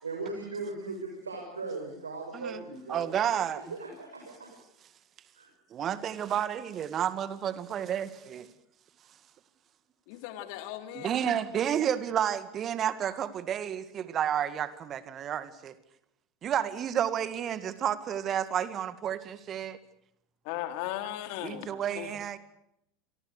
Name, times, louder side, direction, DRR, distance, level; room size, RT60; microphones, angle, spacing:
voice 1, 0.0-3.4 3.7-4.5 5.4-5.5, right 3 dB, 85° right, 2 dB, 5.9 m, -38 dB
voice 2, 2.9-3.6 5.7-8.5 10.9-15.7 16.4-19.8 21.4-22.4, right 9 dB, 35° right, 13 dB, 2.1 m, -31 dB
voice 3, 10.1-11.1 20.5-21.7 22.0-22.1, left 13 dB, 55° left, 8 dB, 3.6 m, -37 dB
28.5 x 24.5 x 6.8 m, 0.80 s
figure-of-eight pair, 80°, 0 cm